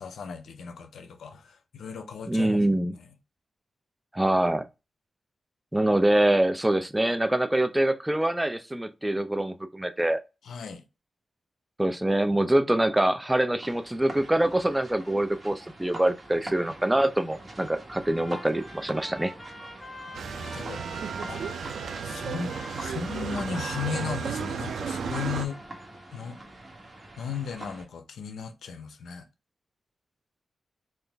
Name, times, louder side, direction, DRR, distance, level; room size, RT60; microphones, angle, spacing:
voice 1, 0.0-2.6 2.9-3.1 10.4-10.8 20.1-20.8 21.3-21.4 22.0-25.6 26.1-26.4 27.2-29.3, left 6 dB, 90° left, 0.6 m, -36 dB
voice 2, 2.3-2.9 4.1-4.6 5.7-10.2 11.8-19.3, right 1 dB, 10° right, 0.5 m, -24 dB
sound 1, 13.6-27.9, right 2 dB, 35° right, 1.3 m, -45 dB
Trumpet, 18.0-26.1, left 1 dB, 15° left, 1.5 m, -46 dB
sound 2, 20.1-25.5, right 6 dB, 85° right, 0.5 m, -33 dB
3.7 x 2.5 x 3.3 m
cardioid pair, 80°, 0 cm